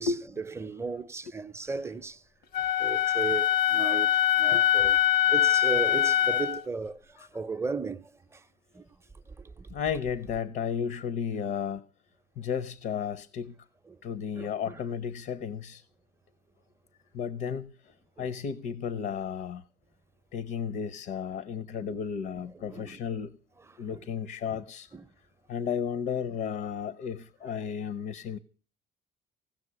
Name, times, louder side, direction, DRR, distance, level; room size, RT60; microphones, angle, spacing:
voice 1, 0.0-2.2 2.8-5.0 5.3-8.4 8.7-8.8 9.6-9.7 13.9-14.0 14.3-14.7 18.2-18.3 21.8-22.0 22.4-22.5 22.7-23.0 23.7-24.0 24.9-25.0, right 4 dB, 15° right, 0.6 m, -36 dB
Wind instrument woodwind instrument, 2.5-6.6, left 12 dB, 85° left, 1.1 m, -23 dB
voice 2, 4.4-5.0 5.4-5.5 7.2-7.3 9.7-11.8 12.4-13.5 14.0-15.8 17.1-19.6 20.3-23.3 23.8-24.9 25.5-28.4, left 7 dB, 70° left, 0.7 m, -33 dB
16.5 x 6.2 x 9.6 m
cardioid pair, 110°, 17 cm